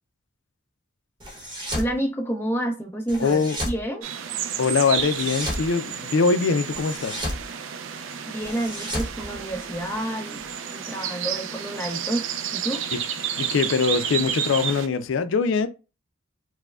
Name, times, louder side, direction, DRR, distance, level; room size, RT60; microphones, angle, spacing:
sound 1, 1.2-1.9 3.1-3.8 4.9-5.7 6.7-7.4 8.4-9.9, equal, 25° right, 0.9 m, -32 dB
voice 1, 1.8-4.1 8.3-10.4 10.7-12.3 12.5-12.8, right 1 dB, 10° left, 0.7 m, -29 dB
voice 2, 3.2-3.6 4.6-7.2 12.9-13.0 13.4-15.7, left 5 dB, 80° left, 0.4 m, -23 dB
sound 2, 4.0-14.9, right 8 dB, 85° right, 0.4 m, -31 dB
4.7 x 2.1 x 2.3 m
head